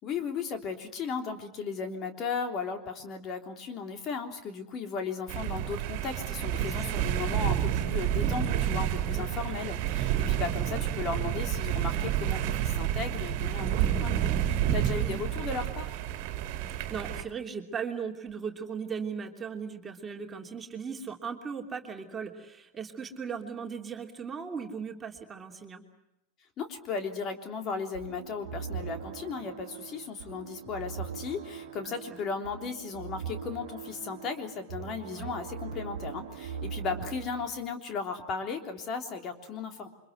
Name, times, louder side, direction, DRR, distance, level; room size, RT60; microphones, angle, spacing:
voice 1, 0.0-16.0 26.6-39.9, left 5 dB, 30° left, 5 dB, 3.4 m, -36 dB
sound 1, 5.3-17.2, right 11 dB, 45° right, 2.6 m, -29 dB
voice 2, 6.6-7.0 9.1-9.3 14.9-15.2 16.7-25.8 31.8-31.9 35.1-35.3 36.9-37.1, right 6 dB, 15° right, 2 dB, 3.1 m, -38 dB
sound 2, 27.9-37.5, right 7 dB, 60° right, 1.9 m, -41 dB
29.5 x 25.0 x 8.1 m, 0.86 s
figure-of-eight pair, 90°, 0 cm